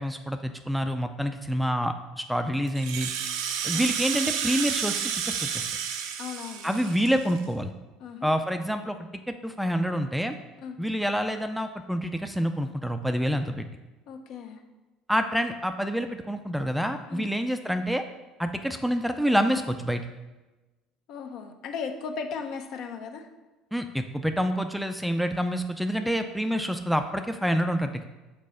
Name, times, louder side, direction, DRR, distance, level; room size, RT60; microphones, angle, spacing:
voice 1, 0.0-3.1 3.6-5.0 5.3-5.6 6.6-7.7 8.2-9.0 9.3-10.4 10.8-13.7 15.1-18.0 18.4-20.0 23.7-28.1, equal, ahead, 7 dB, 0.4 m, -27 dB
Rattle (instrument), 2.7-7.4, right 8 dB, 80° right, 0.6 m, -31 dB
voice 2, 6.2-6.7 8.0-8.3 10.6-10.8 14.1-14.6 17.1-17.3 21.1-23.3, left 6 dB, 65° left, 5 dB, 0.7 m, -36 dB
5.3 x 4.1 x 5.6 m, 1.1 s
supercardioid pair, 105°, 0 cm